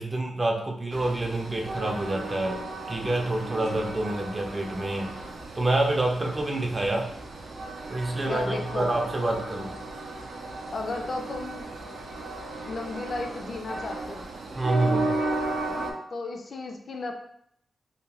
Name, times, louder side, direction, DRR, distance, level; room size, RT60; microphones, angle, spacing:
voice 1, 0.0-2.6 2.9-5.1 5.6-7.1 7.9-9.7 14.6-15.2, right 2 dB, 25° right, 1 dB, 0.4 m, -27 dB
Train, 0.9-15.9, right 2 dB, 90° right, 0.4 m, -35 dB
voice 2, 8.2-8.9 10.7-11.7 12.7-14.3 16.1-17.1, left 3 dB, 50° left, 2 dB, 0.4 m, -34 dB
2.8 x 2.2 x 2.8 m, 0.70 s
wide cardioid pair, 130°, 0 cm